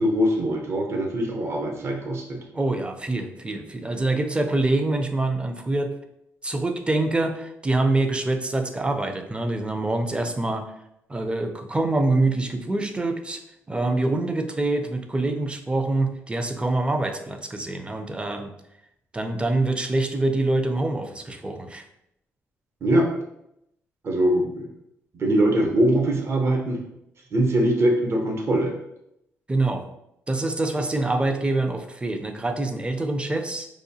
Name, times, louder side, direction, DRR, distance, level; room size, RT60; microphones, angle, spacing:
voice 1, 0.0-2.4 22.8-23.1 24.0-24.7 25.1-26.8 27.3-28.7, right 1 dB, 50° right, 2 dB, 0.8 m, -22 dB
voice 2, 2.5-5.9 6.4-10.7 11.1-13.4 13.7-18.5 19.1-21.9 29.5-29.9 30.3-33.7, right 2 dB, 20° right, 7 dB, 0.5 m, -25 dB
4.7 x 2.3 x 2.7 m, 0.81 s
supercardioid pair, 65°, 6 cm